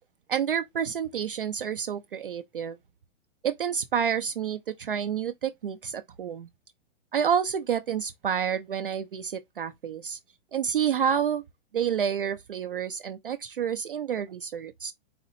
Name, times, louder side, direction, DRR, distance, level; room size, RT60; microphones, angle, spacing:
voice 1, 0.3-2.8 3.4-6.5 7.1-10.2 10.5-11.4 11.7-14.9, right 8 dB, 45° right, 0.4 m, -29 dB
4.1 x 2.7 x 4.0 m
hypercardioid pair, 180°, 38 cm